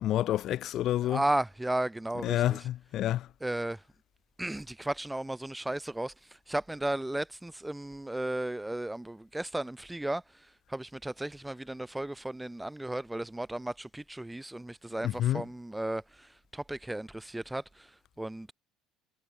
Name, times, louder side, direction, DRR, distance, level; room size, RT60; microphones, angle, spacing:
voice 1, 0.0-1.2 2.2-3.3 15.0-15.4, left 13 dB, 50° left, 2.5 m, -28 dB
voice 2, 1.0-2.6 3.4-3.8 4.4-6.1 6.5-10.2 10.7-17.9 18.2-18.5, right 1 dB, 5° right, 1.2 m, -34 dB
cardioid pair, 140°, 0 cm